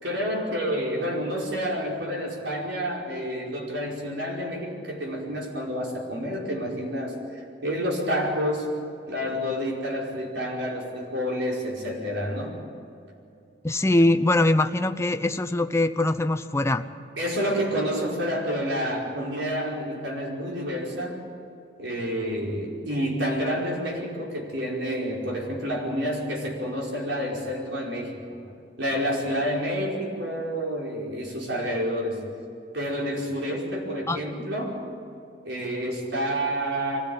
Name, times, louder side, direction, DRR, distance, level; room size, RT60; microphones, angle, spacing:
voice 1, 0.0-8.8 9.1-12.6 17.2-21.2 21.8-28.4 28.8-32.2 32.7-34.9 35.4-37.0, equal, 80° right, -2 dB, 5.2 m, -29 dB
voice 2, 13.6-16.8 34.1-34.2, left 2 dB, 15° left, 9 dB, 0.7 m, -22 dB
24.0 x 16.5 x 8.7 m, 2.5 s
head